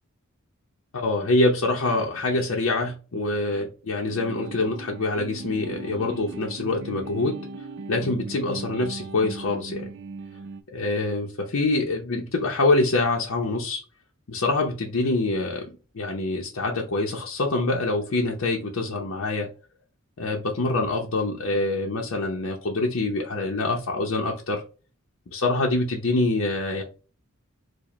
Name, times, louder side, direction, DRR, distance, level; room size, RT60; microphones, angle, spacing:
voice 1, 0.9-7.4 7.9-9.9 10.7-13.8 14.3-19.5 20.2-24.6 25.3-26.8, left 2 dB, 65° left, 0.6 m, -25 dB
sound 1, 4.1-10.6, right 3 dB, 60° right, 0.4 m, -38 dB
4.8 x 2.1 x 3.0 m
head